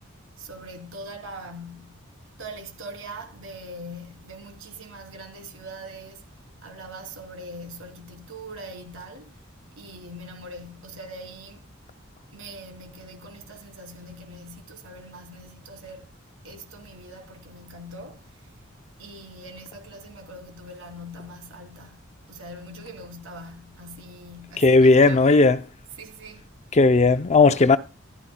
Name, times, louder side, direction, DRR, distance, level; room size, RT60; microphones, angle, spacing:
voice 1, 0.4-2.0 2.4-9.5 9.8-11.7 12.3-16.1 16.4-18.5 19.0-22.0 22.3-25.5 25.9-26.5, right 1 dB, 70° right, 2.9 m, -42 dB
voice 2, 24.6-25.6 26.7-27.8, left 3 dB, 35° left, 0.5 m, -16 dB
15.0 x 12.5 x 2.2 m
head